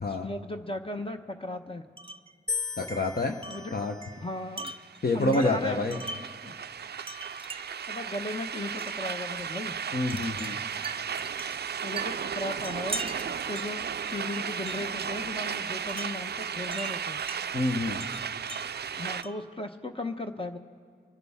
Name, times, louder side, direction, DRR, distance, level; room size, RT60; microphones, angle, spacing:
voice 1, 0.2-1.8 2.8-2.9 3.5-3.7 4.2-4.7 5.1-6.6 7.9-9.8 11.8-17.2 19.0-20.6, left 2 dB, 25° left, 4 dB, 0.9 m, -36 dB
Wind chime, 2.0-2.3 2.9-6.5 7.1-7.9 8.8-9.0 10.1-15.0 15.9-17.4 18.0-19.5, right 3 dB, 25° right, 0.7 m, -42 dB
sound 1, 2.5-4.7 5.5-6.0, left 5 dB, 5° left, 2.6 m, -38 dB
voice 2, 2.8-3.3 3.7-3.9 5.0-6.0 9.9-10.6 17.5-18.0, left 2 dB, 50° left, 3 dB, 1.0 m, -27 dB
sound 2, 4.7-19.2, right 7 dB, 55° right, 0.4 m, -35 dB
27.0 x 10.5 x 3.6 m, 2.2 s
cardioid pair, 45°, 20 cm